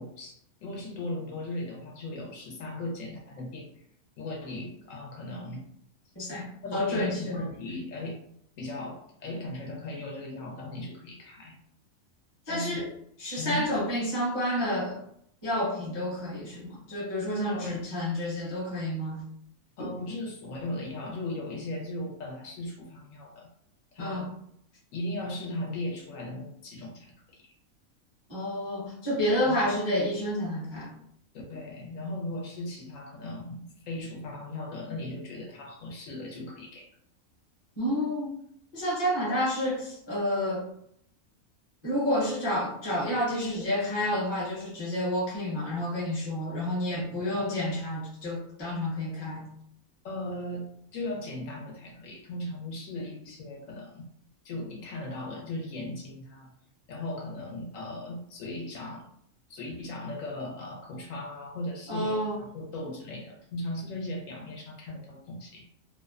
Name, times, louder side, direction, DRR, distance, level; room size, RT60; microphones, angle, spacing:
voice 1, 0.0-3.8 4.2-5.7 6.6-8.2 8.6-11.6 12.5-12.9 13.4-13.7 17.5-17.9 19.8-23.5 23.9-24.3 24.9-27.5 29.5-29.7 31.3-36.9 46.9-47.4 50.0-54.1 54.4-56.5 56.9-59.1 59.5-65.7, left 1 dB, 70° left, 0 dB, 0.9 m, -37 dB
voice 2, 6.1-6.5 6.7-7.4 12.5-12.9 13.2-15.0 15.4-19.2 19.8-19.9 24.0-24.3 28.3-30.9 37.8-38.4 38.7-40.7 41.8-49.4 61.9-62.4, left 1 dB, 25° left, -5 dB, 0.6 m, -29 dB
2.6 x 2.0 x 2.3 m, 0.70 s
omnidirectional pair, 1.4 m